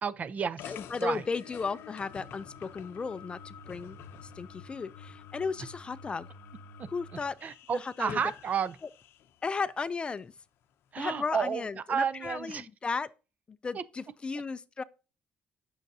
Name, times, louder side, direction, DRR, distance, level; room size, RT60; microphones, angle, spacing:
voice 1, 0.0-0.7 1.0-1.2 6.8-6.9 7.4-8.8 10.9-11.6 11.9-12.7 13.7-13.8, right 6 dB, 40° right, 0.5 m, -31 dB
sound 1, 0.6-9.3, left 7 dB, 75° left, 0.6 m, -48 dB
voice 2, 0.6-4.0 4.2-6.3 6.9-7.4 7.7-8.2 9.4-10.3 11.0-13.1 13.5-14.8, left 4 dB, 25° left, 0.3 m, -35 dB
9.0 x 6.4 x 2.7 m
cardioid pair, 130°, 4 cm